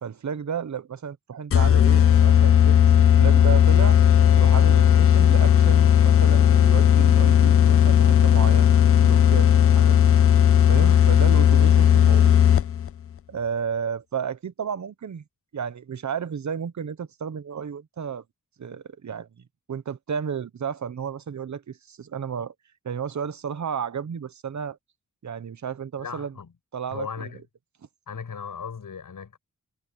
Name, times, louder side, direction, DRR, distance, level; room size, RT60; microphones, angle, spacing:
voice 1, 0.0-4.0 4.4-8.7 9.0-10.1 10.7-12.4 13.3-15.2 15.5-18.2 18.6-22.5 22.8-24.8 25.2-26.3 26.7-27.3, right 7 dB, 60° right, 1.0 m, -32 dB
sound 1, 1.5-12.9, left 9 dB, 45° left, 0.4 m, -16 dB
voice 2, 26.0-26.5 26.9-27.4 28.1-29.4, left 6 dB, 75° left, 7.7 m, -37 dB
wide cardioid pair, 135°, 33 cm